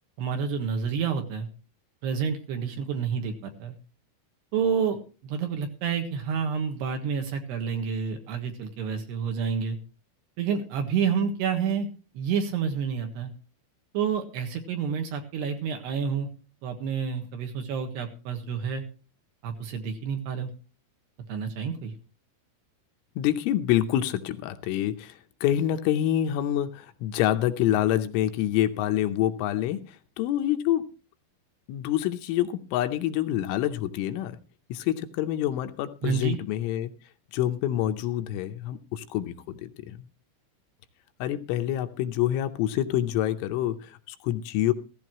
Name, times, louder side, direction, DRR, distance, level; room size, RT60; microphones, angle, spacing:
voice 1, 0.2-1.5 2.0-3.7 4.5-9.8 10.4-11.9 12.1-13.3 13.9-16.3 16.6-18.8 19.4-20.5 21.3-21.9 36.0-36.4, right 6 dB, 65° right, 5 dB, 3.1 m, -29 dB
voice 2, 23.2-30.9 31.7-34.4 34.7-36.9 37.3-40.0 41.2-44.7, left 12 dB, 80° left, 7 dB, 3.2 m, -27 dB
15.5 x 15.5 x 3.0 m, 0.34 s
omnidirectional pair, 5.9 m